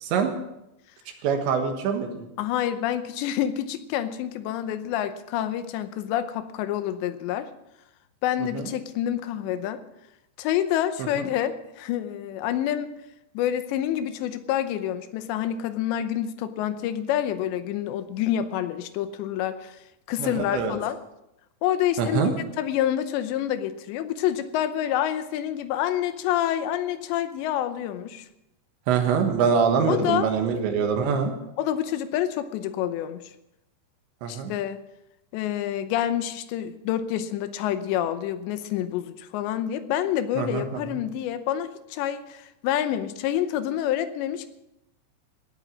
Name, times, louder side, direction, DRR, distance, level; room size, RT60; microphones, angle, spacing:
voice 1, 0.0-0.3 1.2-2.3 8.5-8.7 11.2-11.3 20.2-20.8 22.0-22.3 28.9-31.3 34.2-34.5 40.4-41.0, right 6 dB, 80° right, 5 dB, 3.6 m, -24 dB
voice 2, 2.4-7.5 8.2-9.8 10.4-12.9 13.3-19.8 20.1-21.0 21.6-28.3 29.9-30.3 31.6-33.2 34.3-34.8 35.3-44.5, left 11 dB, 80° left, 11 dB, 3.0 m, -27 dB
18.0 x 9.1 x 6.1 m, 0.88 s
omnidirectional pair, 5.3 m